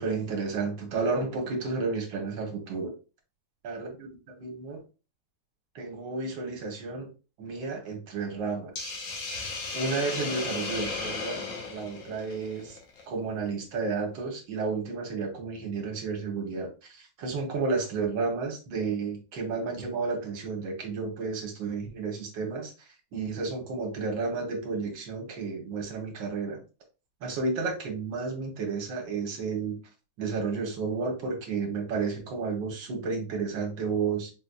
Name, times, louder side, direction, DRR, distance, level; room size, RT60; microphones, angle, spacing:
voice 1, 0.0-2.9 3.6-4.8 5.7-7.1 7.4-8.9 9.7-11.4 11.7-12.8 13.1-22.7 23.1-26.6 27.2-29.8 30.2-34.3, right 4 dB, 70° right, 1 dB, 1.6 m, -32 dB
Hiss, 8.8-13.0, left 4 dB, 75° left, 1.6 m, -35 dB
4.8 x 2.6 x 2.2 m, 0.32 s
omnidirectional pair, 2.2 m